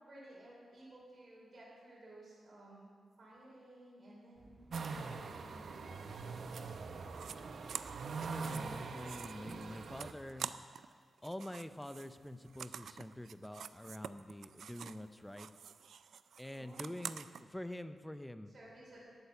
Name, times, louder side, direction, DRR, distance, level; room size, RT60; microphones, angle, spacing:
voice 1, 0.0-2.9 3.2-4.5 4.8-6.5 16.5-17.1 18.5-19.2, right 1 dB, 50° right, -5 dB, 3.8 m, -56 dB
Bicycle / Mechanisms, 4.4-10.5, right 2 dB, 25° right, 0.7 m, -57 dB
sound 1, 4.7-10.1, right 4 dB, 65° right, 0.8 m, -43 dB
sound 2, 7.1-7.4 7.7-10.9 11.2-15.1 15.3-17.4, right 7 dB, 85° right, 0.4 m, -47 dB
voice 2, 8.2-10.5 11.2-15.5 16.4-18.5, left 1 dB, 5° left, 11 dB, 0.6 m, -46 dB
12.0 x 8.7 x 6.9 m, 2.1 s
wide cardioid pair, 110°, 0 cm